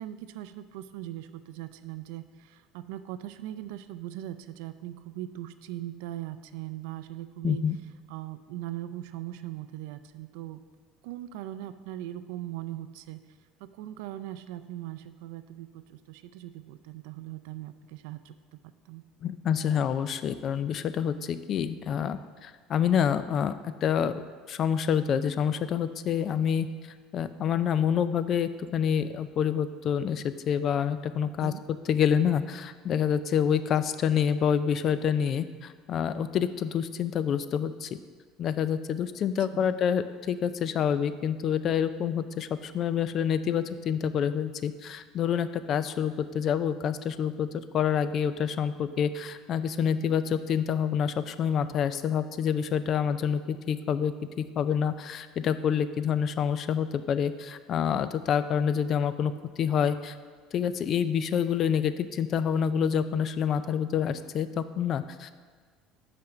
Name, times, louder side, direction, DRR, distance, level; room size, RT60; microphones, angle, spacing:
voice 1, 0.0-7.6 8.1-10.6 11.0-13.2 13.6-18.6 18.9-19.0 31.4-31.6 39.5-39.8, right 13 dB, 80° right, 11 dB, 0.4 m, -40 dB
voice 2, 7.4-7.8 19.2-23.5 23.8-24.1 24.5-26.7 27.1-31.5 31.9-37.9 38.4-47.5 47.7-60.2 60.5-65.3, left 8 dB, 35° left, 13 dB, 0.3 m, -27 dB
5.6 x 5.1 x 6.6 m, 1.5 s
cardioid pair, 170°, 0 cm